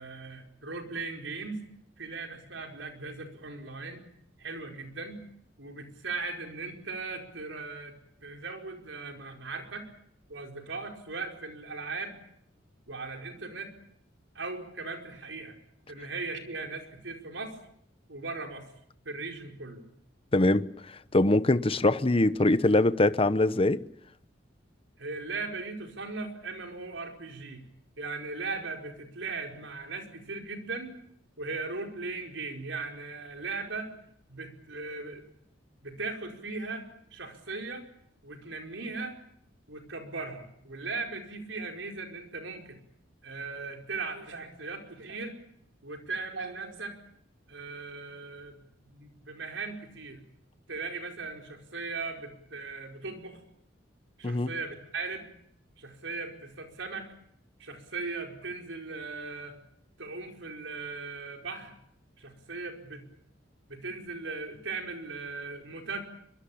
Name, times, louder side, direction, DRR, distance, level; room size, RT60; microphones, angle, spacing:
voice 1, 0.0-1.6 2.0-4.0 4.4-5.2 5.6-9.9 10.3-12.2 12.9-13.7 14.3-15.6 15.9-17.6 18.1-18.7 19.0-19.8 25.0-27.6 28.0-30.9 31.4-33.9 34.3-35.2 35.8-37.8 38.2-39.2 39.7-42.8 43.2-45.4 45.8-47.0 47.5-50.2 50.7-53.4 54.2-55.3 55.8-57.1 57.6-59.6 60.0-61.7 62.2-63.0 63.7-66.0, right 3 dB, 80° right, 4.9 m, -38 dB
voice 2, 20.3-20.7 21.1-23.8 54.2-54.5, left 2 dB, 30° left, 0.9 m, -23 dB
23.5 x 23.0 x 8.7 m
head